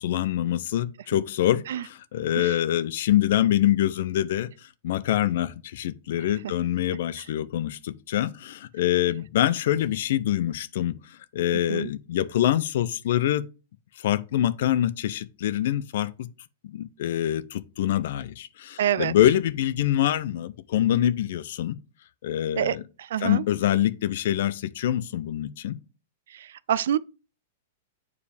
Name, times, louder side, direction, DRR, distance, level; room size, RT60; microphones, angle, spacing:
voice 1, 0.0-13.4 14.0-16.3 16.6-21.8 22.2-22.8 23.2-25.8, left 12 dB, 65° left, 0.5 m, -25 dB
voice 2, 18.8-19.1 22.6-23.4 26.3-27.0, right 10 dB, 75° right, 0.4 m, -27 dB
7.1 x 4.8 x 3.3 m
hypercardioid pair, 135°, 0 cm